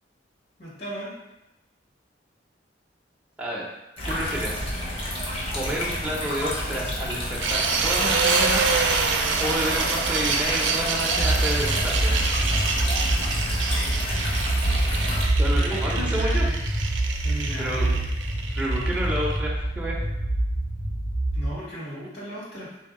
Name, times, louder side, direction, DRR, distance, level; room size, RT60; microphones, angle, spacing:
voice 1, 0.6-1.1 15.5-16.6 17.2-18.0 21.3-22.7, right 1 dB, 60° left, -6 dB, 1.3 m, -35 dB
sound 1, 4.0-15.2, left 1 dB, 30° left, 0.8 m, -30 dB
voice 2, 4.1-4.7 5.5-8.8 9.4-12.1 15.4-16.4 17.6-17.9 18.6-20.0, equal, 10° right, -5 dB, 0.6 m, -30 dB
sound 2, 7.4-19.4, right 5 dB, 80° right, 0.4 m, -27 dB
sound 3, 11.1-21.5, right 1 dB, 85° left, 1.3 m, -25 dB
3.6 x 2.7 x 3.6 m, 0.95 s
head